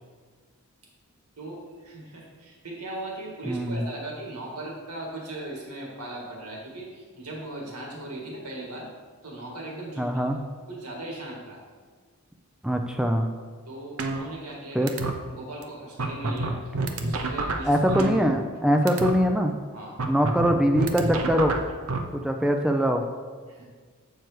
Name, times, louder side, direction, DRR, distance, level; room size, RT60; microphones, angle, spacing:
voice 1, 1.4-8.9 9.2-10.4 10.7-11.6 13.7-14.9 15.3-16.7 17.0-17.8 18.9-19.0 19.7-19.9 23.5-23.7, right 1 dB, 90° right, -2 dB, 1.9 m, -38 dB
voice 2, 3.4-3.8 10.0-10.4 12.6-13.3 14.7-14.9 17.7-19.5 20.1-21.6 22.1-23.0, equal, 5° right, 4 dB, 0.3 m, -23 dB
sound 1, 14.0-14.6 14.9-15.1 15.6-15.7 16.0-18.6 18.9-19.1 20.0-22.0, right 3 dB, 70° right, 0.7 m, -28 dB
7.9 x 4.7 x 4.6 m, 1.5 s
head